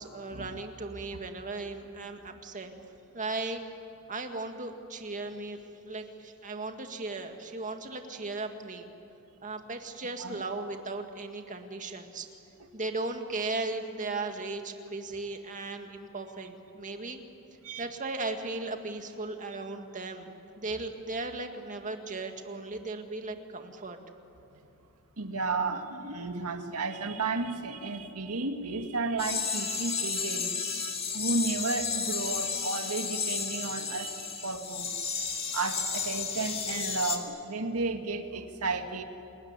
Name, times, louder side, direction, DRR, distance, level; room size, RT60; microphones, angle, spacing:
voice 1, 0.0-2.7 3.1-3.6 4.1-5.6 5.8-8.9 9.4-12.3 12.7-17.2 17.8-20.3 20.6-24.0, right 3 dB, 35° right, 5 dB, 2.1 m, -36 dB
voice 2, 25.2-35.0 35.5-39.0, right 3 dB, 85° right, 5 dB, 2.0 m, -33 dB
sound 1, 29.2-37.2, left 5 dB, 30° left, 2.2 m, -33 dB
29.0 x 20.5 x 9.8 m, 2.8 s
head